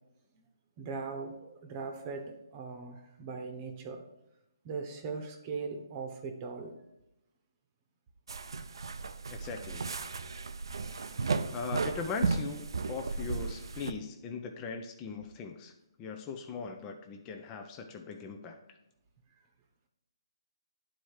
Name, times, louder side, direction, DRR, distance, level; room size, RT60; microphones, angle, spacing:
voice 1, 0.8-4.0 4.6-6.8, right 4 dB, 30° right, 4 dB, 1.0 m, -40 dB
sound 1, 8.3-13.9, right 4 dB, 70° right, 0.6 m, -35 dB
voice 2, 9.3-9.9 10.9-11.2 11.5-15.7 16.0-18.6, left 5 dB, 20° left, 4 dB, 0.6 m, -40 dB
10.0 x 4.4 x 4.7 m, 0.92 s
hypercardioid pair, 150°, 2 cm